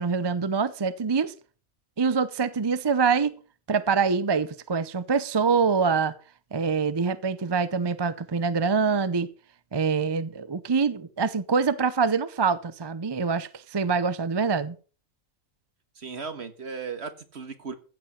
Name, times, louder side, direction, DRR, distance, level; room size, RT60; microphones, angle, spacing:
voice 1, 0.0-1.3 2.0-3.4 3.7-6.1 6.5-9.3 9.7-14.8, right 5 dB, 30° right, 0.4 m, -25 dB
voice 2, 15.9-17.7, right 5 dB, 50° right, 1.7 m, -36 dB
15.5 x 7.7 x 5.7 m
omnidirectional pair, 1.4 m